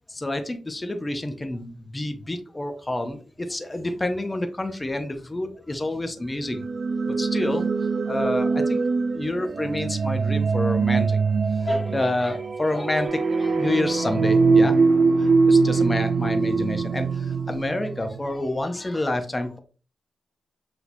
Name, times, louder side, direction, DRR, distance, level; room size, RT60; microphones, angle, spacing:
voice 1, 0.1-6.6 7.2-7.7 8.1-8.8 9.1-11.2 11.6-14.8 15.2-19.6, left 1 dB, 20° left, 6 dB, 0.6 m, -28 dB
sound 1, 6.4-18.3, right 5 dB, 55° right, 0.3 m, -26 dB
sound 2, 13.1-17.6, right 3 dB, 85° right, 1.5 m, -20 dB
5.9 x 2.8 x 2.6 m, 0.38 s
cardioid pair, 90°, 0 cm